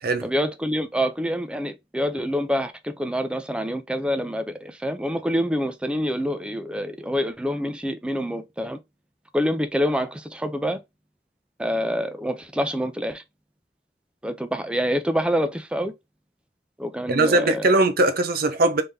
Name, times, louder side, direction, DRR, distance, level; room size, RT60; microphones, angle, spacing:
voice 1, 0.2-8.8 9.3-10.8 11.6-13.2 14.2-15.9 16.8-17.7, equal, 5° right, 0.5 m, -26 dB
voice 2, 17.1-18.8, right 2 dB, 60° right, 0.7 m, -20 dB
3.7 x 3.4 x 2.7 m
head